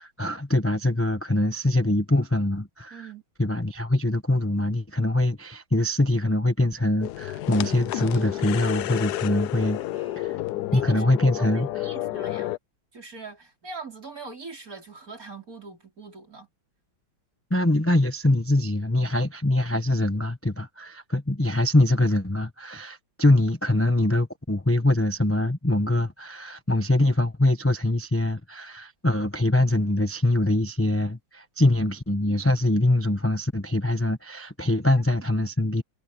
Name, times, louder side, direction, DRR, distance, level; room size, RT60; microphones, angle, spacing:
voice 1, 0.0-3.1 3.4-10.4 10.7-11.7 17.5-35.8, left 1 dB, 10° left, 0.8 m, -23 dB
voice 2, 2.9-3.2 10.7-12.5 12.9-16.5 34.9-35.3, right 4 dB, 40° right, 5.3 m, -42 dB
sound 1, 7.0-12.6, left 15 dB, 80° left, 0.9 m, -30 dB
omnidirectional pair, 2.3 m